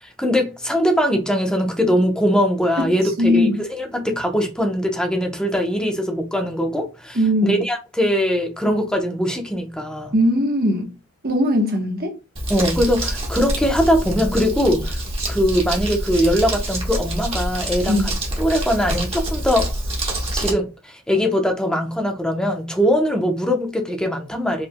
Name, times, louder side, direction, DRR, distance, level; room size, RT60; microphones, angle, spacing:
voice 1, 0.0-10.1 12.5-15.0 15.3-18.0 18.4-19.7 20.3-24.7, equal, 5° left, 0.8 m, -21 dB
voice 2, 3.2-3.6 7.1-7.6 10.1-10.9 11.2-12.2 17.9-18.1, equal, 45° right, 1.1 m, -19 dB
Crumpling crinkling, 12.4-20.5, right 1 dB, 25° right, 1.4 m, -26 dB
4.8 x 3.3 x 2.2 m
head